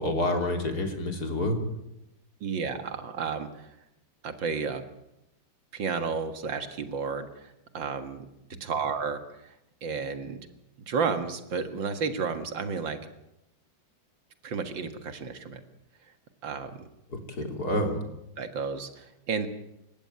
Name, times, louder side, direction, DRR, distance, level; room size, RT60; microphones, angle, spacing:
voice 1, 0.0-1.6 17.1-18.0, left 1 dB, 50° left, 4 dB, 3.7 m, -28 dB
voice 2, 2.4-3.8 4.2-4.8 5.7-8.3 8.6-9.5 9.8-10.5 10.9-13.0 14.4-15.6 16.4-16.8 18.4-19.5, right 5 dB, 70° right, 8 dB, 2.4 m, -32 dB
28.0 x 15.5 x 8.8 m, 0.88 s
omnidirectional pair, 2.1 m